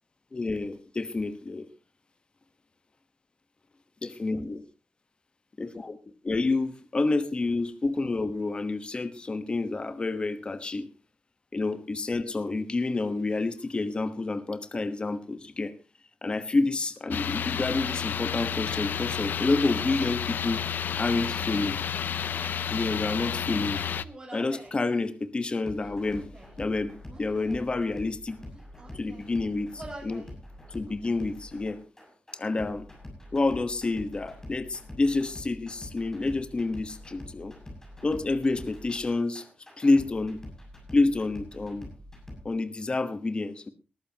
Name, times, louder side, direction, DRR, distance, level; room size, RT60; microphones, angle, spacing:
voice 1, 0.3-1.7 4.0-4.6 5.6-6.0 6.2-10.9 11.5-15.7 16.2-20.6 21.0-21.8 22.7-23.8 24.3-26.3 26.6-28.4 28.9-30.3 30.7-31.8 32.3-32.9 33.3-37.5 38.0-39.5 39.8-40.4 40.9-41.9 42.4-43.7, left 3 dB, 30° left, 10 dB, 1.2 m, -28 dB
sound 1, 17.1-24.0, left 8 dB, 85° left, 0.7 m, -31 dB
Human voice, 24.0-24.8 25.7-26.6 27.1-27.7 28.4-29.3 29.7-30.3 30.7-31.4, right 2 dB, 25° right, 7.5 m, -47 dB
sound 2, 25.6-42.4, left 1 dB, 15° left, 6.9 m, -45 dB
20.0 x 14.0 x 2.9 m, 0.31 s
wide cardioid pair, 130°, 3 cm